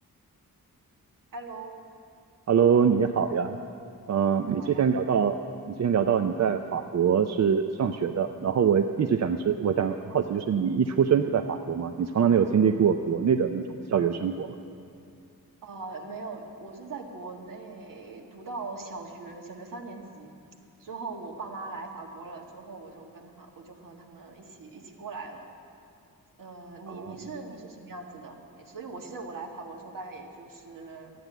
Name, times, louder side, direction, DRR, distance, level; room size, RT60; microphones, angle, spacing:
voice 1, 1.3-1.8 4.4-4.8 15.6-20.3 20.8-25.5 26.4-31.1, right 3 dB, 65° right, 1 dB, 1.8 m, -41 dB
voice 2, 2.5-3.6 4.1-5.4 5.7-14.5 26.9-27.1, right 7 dB, 50° right, 6 dB, 0.5 m, -24 dB
13.5 x 9.5 x 9.0 m, 2.4 s
wide cardioid pair, 150°, 36 cm